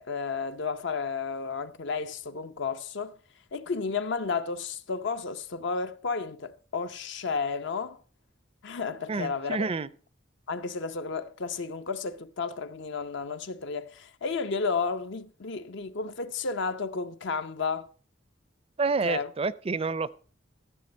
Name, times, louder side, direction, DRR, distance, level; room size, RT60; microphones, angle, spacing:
voice 1, 0.0-3.2 3.5-8.0 8.6-9.7 10.5-17.9 19.0-19.3, left 4 dB, 65° left, 0.7 m, -32 dB
voice 2, 9.1-9.9 18.8-20.1, right 4 dB, 30° right, 0.4 m, -28 dB
14.5 x 6.9 x 5.2 m
head